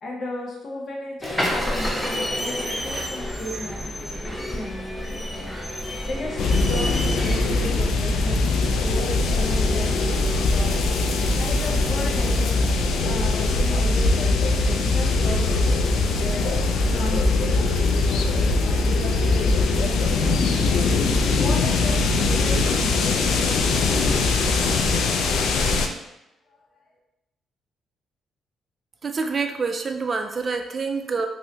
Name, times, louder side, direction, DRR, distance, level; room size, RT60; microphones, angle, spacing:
voice 1, 0.0-6.4 6.7-10.9 11.4-12.7 13.0-15.7 16.1-16.5 16.9-20.3 21.2-23.7 26.5-26.6, left 1 dB, 50° left, -1 dB, 0.8 m, -35 dB
sound 1, 1.2-7.7, equal, 5° left, 0.6 m, -29 dB
sound 2, 6.4-25.9, left 3 dB, 75° left, 0.3 m, -21 dB
voice 2, 29.0-31.3, right 4 dB, 40° right, 5 dB, 0.4 m, -26 dB
3.2 x 2.7 x 2.8 m, 0.91 s
cardioid pair, 90°, 0 cm